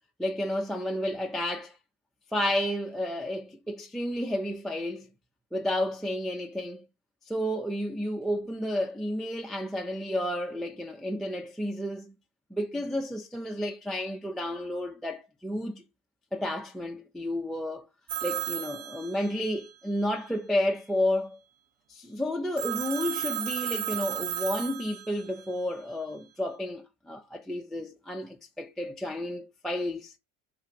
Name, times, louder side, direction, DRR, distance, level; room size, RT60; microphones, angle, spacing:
voice 1, 0.2-1.8 2.3-5.1 5.5-6.9 7.3-12.1 12.5-15.8 16.3-17.9 18.2-21.4 21.9-30.1, left 1 dB, ahead, 0.4 m, -31 dB
Telephone, 18.1-19.6 22.6-25.4, right 11 dB, 50° right, 0.8 m, -34 dB
3.8 x 2.4 x 4.3 m
hypercardioid pair, 75°, 44 cm